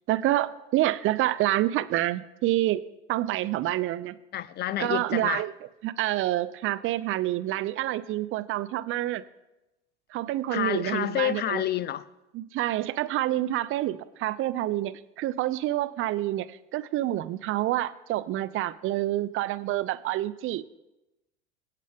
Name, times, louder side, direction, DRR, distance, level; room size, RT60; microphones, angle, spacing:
voice 1, 0.1-2.8 3.1-4.2 4.8-5.5 5.8-9.2 10.1-11.6 12.3-20.6, right 15 dB, 40° right, 0.6 m, -27 dB
voice 2, 4.3-5.4 10.5-12.0, left 12 dB, 30° left, 0.6 m, -29 dB
22.5 x 8.4 x 3.5 m
hypercardioid pair, 80°, 32 cm